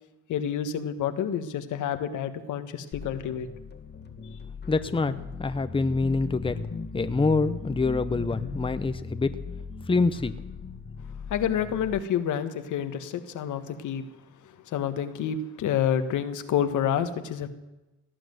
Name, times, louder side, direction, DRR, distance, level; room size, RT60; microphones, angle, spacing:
voice 1, 0.3-3.5 11.3-14.0 14.7-17.5, left 9 dB, 80° left, 9 dB, 1.5 m, -28 dB
sound 1, 2.9-12.0, left 4 dB, 35° left, 1.8 m, -38 dB
voice 2, 4.7-6.6 6.9-9.3 9.9-10.3, left 3 dB, 15° left, 11 dB, 0.9 m, -26 dB
18.0 x 10.0 x 7.9 m, 1.0 s
cardioid pair, 90°, 30 cm